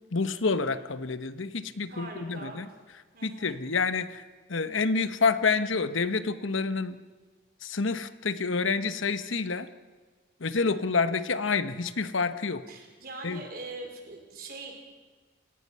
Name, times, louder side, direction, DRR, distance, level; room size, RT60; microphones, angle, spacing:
voice 1, 0.1-2.7 3.2-4.2 4.5-7.0 7.6-9.7 10.4-12.6 13.2-13.4, left 4 dB, 85° left, 12 dB, 1.1 m, -28 dB
voice 2, 1.9-2.6 3.1-3.6 12.7-14.8, right 2 dB, 50° right, 2 dB, 4.4 m, -42 dB
28.5 x 18.0 x 5.6 m, 1.4 s
head